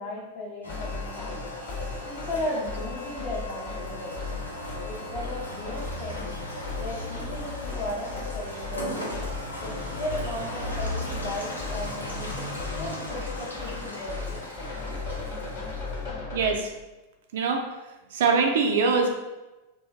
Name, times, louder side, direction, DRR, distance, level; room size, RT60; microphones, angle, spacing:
voice 1, 0.0-1.4 2.0-4.2 4.8-6.3 6.8-9.1 9.6-14.5, left 1 dB, 40° left, -5 dB, 0.4 m, -36 dB
Rain, 0.6-16.0, left 1 dB, 90° left, 0.6 m, -37 dB
sound 1, 0.7-16.5, left 4 dB, 55° left, 0.9 m, -37 dB
voice 2, 16.3-16.7 17.3-17.6 18.1-19.1, right 4 dB, 55° right, 3 dB, 0.3 m, -23 dB
2.4 x 2.0 x 3.4 m, 1.1 s
figure-of-eight pair, 90°, 0 cm